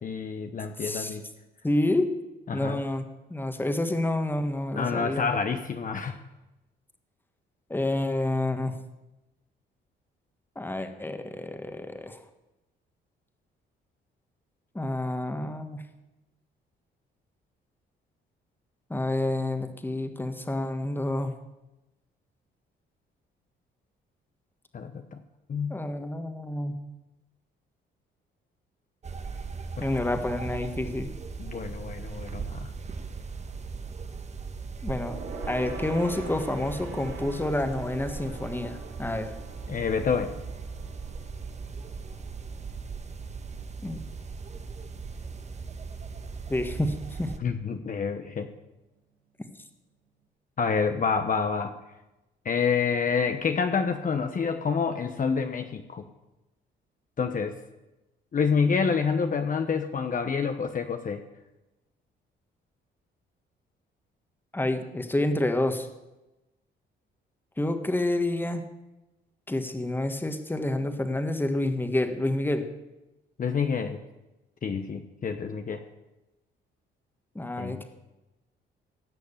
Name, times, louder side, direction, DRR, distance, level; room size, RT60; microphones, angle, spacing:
voice 1, 0.0-1.2 2.5-2.8 4.7-6.2 24.7-25.2 25.5-25.8 29.8-29.9 31.4-32.7 39.7-40.3 47.4-48.5 50.6-51.7 52.4-56.0 57.2-57.6 58.3-61.2 73.4-74.0 74.6-75.8 77.6-77.8, left 5 dB, 45° left, 6 dB, 1.1 m, -28 dB
voice 2, 0.8-1.1 1.6-2.1 2.5-3.0 3.3-5.3 7.7-8.7 10.5-12.2 14.7-15.8 18.9-21.3 25.7-26.7 29.8-31.1 34.8-35.1 35.5-39.3 43.8-44.0 46.5-47.3 64.5-65.9 67.6-68.6 69.5-72.6 77.3-77.8, left 1 dB, 10° left, 7 dB, 1.6 m, -28 dB
sound 1, 29.0-47.4, right 5 dB, 35° right, 1.3 m, -38 dB
Gong, 35.0-44.8 45.1-45.3 45.6-45.7, right 3 dB, 65° right, 4.5 m, -44 dB
17.0 x 6.4 x 8.5 m, 1.0 s
cardioid pair, 90°, 20 cm